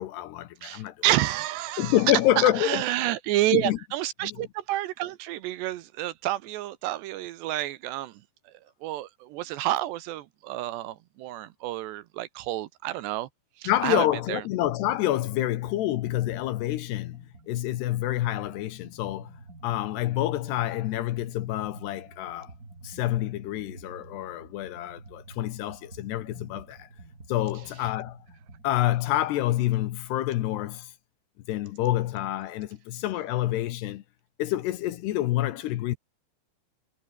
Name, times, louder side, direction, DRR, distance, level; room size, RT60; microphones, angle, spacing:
voice 1, 0.0-1.0 1.8-2.8 3.5-3.8 4.2-4.4 13.7-19.3 19.6-22.5 22.8-26.9 27.3-28.2 28.6-30.9 31.5-34.0 34.4-36.0, left 14 dB, 70° left, 2.9 m, -27 dB
voice 2, 0.6-2.0 2.4-8.2 8.5-8.6 8.8-13.3 13.6-14.4, right 15 dB, 75° right, 2.9 m, -29 dB
sound 1, 15.6-15.8 16.1-29.4, right 2 dB, 20° right, 4.7 m, -50 dB
omnidirectional pair, 5.4 m